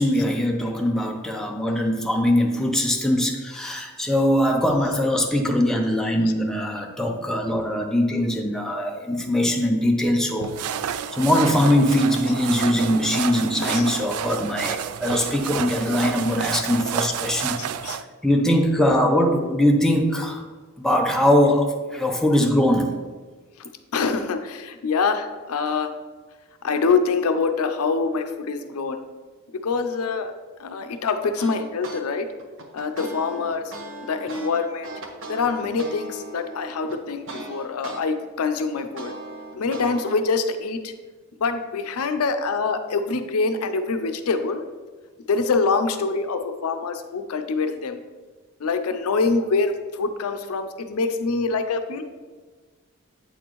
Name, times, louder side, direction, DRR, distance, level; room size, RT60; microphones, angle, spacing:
voice 1, 0.0-17.6 18.2-20.5 20.8-23.0, left 1 dB, ahead, 1 dB, 0.5 m, -21 dB
sound 1, 10.4-18.0, right 8 dB, 85° right, 0.3 m, -30 dB
voice 2, 17.5-18.0 23.9-25.9 26.6-29.0 29.6-30.3 30.6-32.3 32.7-33.6 34.0-34.9 35.3-39.1 39.5-40.9 41.4-44.6 45.3-48.0 48.6-52.0, left 4 dB, 80° left, 8 dB, 0.5 m, -25 dB
sound 2, 31.4-32.0 32.4-38.0 38.4-40.2, right 2 dB, 60° right, 0.7 m, -38 dB
8.1 x 4.3 x 3.0 m, 1.4 s
head